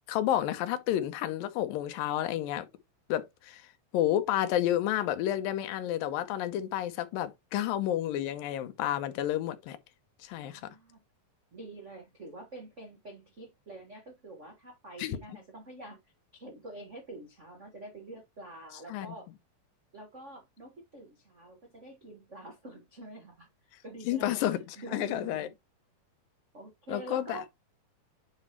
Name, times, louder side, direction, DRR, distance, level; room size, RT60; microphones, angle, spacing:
voice 1, 0.1-2.7 3.1-3.7 3.9-9.8 10.2-10.7 15.0-15.2 18.9-19.2 24.1-24.6 24.9-25.5 26.9-27.4, left 12 dB, 85° left, 2.6 m, -30 dB
voice 2, 10.4-11.0 11.5-16.0 16.3-19.3 19.9-23.5 23.8-24.4 24.8-25.5 26.5-27.4, right 1 dB, 60° right, 0.7 m, -46 dB
9.4 x 4.3 x 3.0 m
omnidirectional pair, 4.0 m